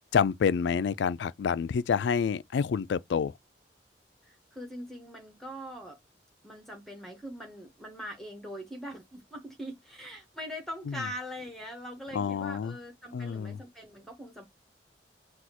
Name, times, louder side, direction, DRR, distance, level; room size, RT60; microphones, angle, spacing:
voice 1, 0.1-3.3 10.9-11.0 12.1-12.7 13.1-13.6, left 6 dB, 75° left, 0.3 m, -28 dB
voice 2, 4.2-6.0 6.4-14.5, equal, ahead, 0.8 m, -42 dB
6.2 x 2.4 x 2.8 m
head